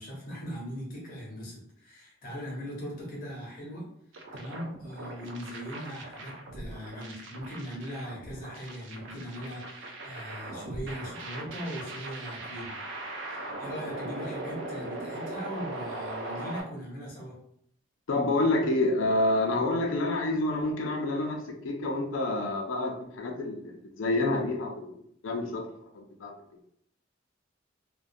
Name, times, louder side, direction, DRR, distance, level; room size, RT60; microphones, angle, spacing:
voice 1, 0.0-3.9 4.3-12.8 13.3-17.3, equal, 45° left, -3 dB, 0.8 m, -40 dB
sound 1, 4.1-16.6, right 2 dB, 70° right, 0.4 m, -39 dB
voice 2, 18.1-25.6 25.9-26.3, left 2 dB, 80° left, 2 dB, 0.4 m, -28 dB
2.4 x 2.1 x 2.6 m, 0.70 s
head